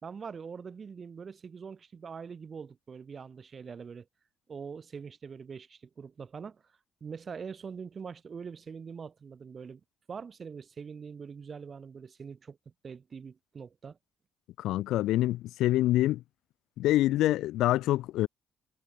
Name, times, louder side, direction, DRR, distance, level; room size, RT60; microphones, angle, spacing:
voice 1, 0.0-4.1 4.5-6.6 7.0-9.8 10.1-12.6 12.8-14.0, right 6 dB, 45° right, 4.1 m, -43 dB
voice 2, 14.6-16.2 16.8-18.3, left 15 dB, 90° left, 0.8 m, -26 dB
cardioid pair, 90°, 0 cm